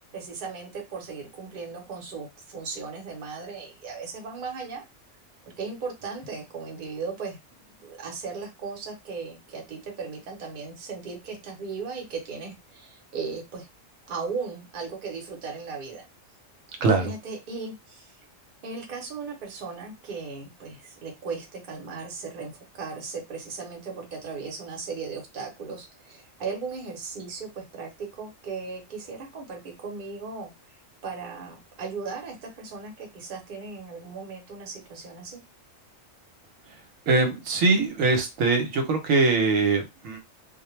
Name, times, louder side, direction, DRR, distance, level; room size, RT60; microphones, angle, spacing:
voice 1, 0.1-4.8 5.5-13.7 14.1-16.1 16.8-18.2 18.6-30.8 31.0-35.4, right 4 dB, 45° right, 1 dB, 0.8 m, -37 dB
voice 2, 16.8-17.1 37.1-40.2, right 3 dB, 80° right, 4 dB, 1.0 m, -22 dB
2.2 x 2.1 x 3.0 m, 0.23 s
omnidirectional pair, 1.4 m